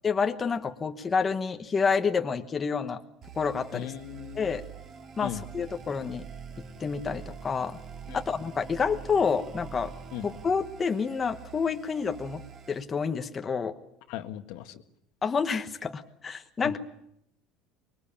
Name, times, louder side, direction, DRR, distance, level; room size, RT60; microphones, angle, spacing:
voice 1, 0.0-3.0 3.3-3.9 4.3-4.6 5.2-6.2 6.8-7.8 8.2-9.9 10.2-12.4 12.7-13.7 15.2-16.8, left 5 dB, 20° left, 5 dB, 1.2 m, -28 dB
sound 1, 3.2-12.8, right 6 dB, 35° right, 2.4 m, -45 dB
voice 2, 3.7-4.5 5.2-5.4 8.1-8.2 10.1-10.3 14.1-14.8 16.6-16.7, left 12 dB, 65° left, 7 dB, 1.7 m, -38 dB
25.0 x 22.0 x 8.7 m, 0.78 s
cardioid pair, 160°, 0 cm